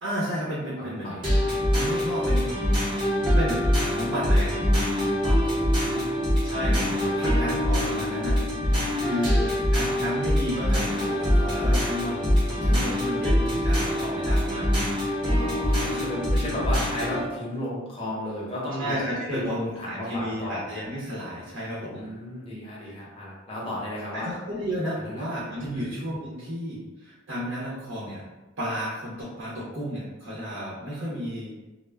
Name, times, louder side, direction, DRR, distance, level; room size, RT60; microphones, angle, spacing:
voice 1, 0.0-1.3 1.8-2.5 3.3-4.5 6.4-14.9 18.8-22.0 22.8-23.0 24.1-28.3 28.6-31.5, equal, 70° right, -7 dB, 0.7 m, -32 dB
voice 2, 0.8-1.2 4.9-6.2 7.2-7.5 9.2-9.4 15.2-18.9 19.3-20.8 22.0-24.3 25.0-25.9, left 1 dB, 25° left, -6 dB, 0.7 m, -34 dB
sound 1, 1.2-17.2, equal, 25° right, 0.8 m, -24 dB
2.1 x 2.0 x 3.3 m, 1.1 s
head